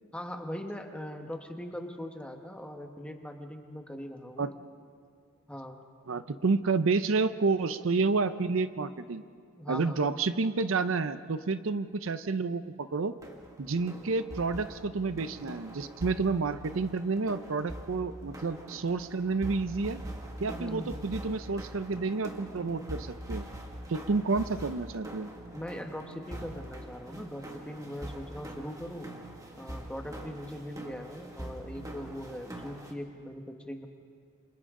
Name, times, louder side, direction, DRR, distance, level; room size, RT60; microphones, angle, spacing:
voice 1, 0.1-4.5 5.5-5.8 9.5-10.0 20.6-20.9 25.5-29.1 29.5-33.9, equal, 5° left, 4 dB, 1.3 m, -40 dB
voice 2, 6.1-9.2 9.7-13.2 13.6-20.0 20.4-23.5 23.9-25.3, right 4 dB, 65° right, 12 dB, 0.6 m, -30 dB
sound 1, 13.2-32.9, right 1 dB, 15° right, 1.8 m, -43 dB
28.5 x 26.5 x 3.8 m, 2.2 s
head